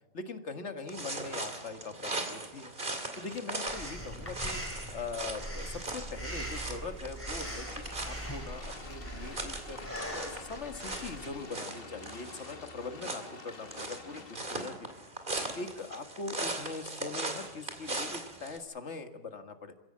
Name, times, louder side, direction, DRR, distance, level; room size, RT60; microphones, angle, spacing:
voice 1, 0.1-2.7 3.2-4.6 4.9-9.8 10.1-15.1 15.5-19.7, left 4 dB, 65° left, 7 dB, 1.9 m, -42 dB
sound 1, 0.9-18.6, right 2 dB, 40° right, 2.7 m, -40 dB
Breathing, 3.7-11.3, right 1 dB, 10° left, 4.9 m, -41 dB
sound 2, 7.4-14.4, left 4 dB, 50° left, 1.7 m, -49 dB
28.0 x 16.5 x 7.5 m, 1.1 s
omnidirectional pair, 1.3 m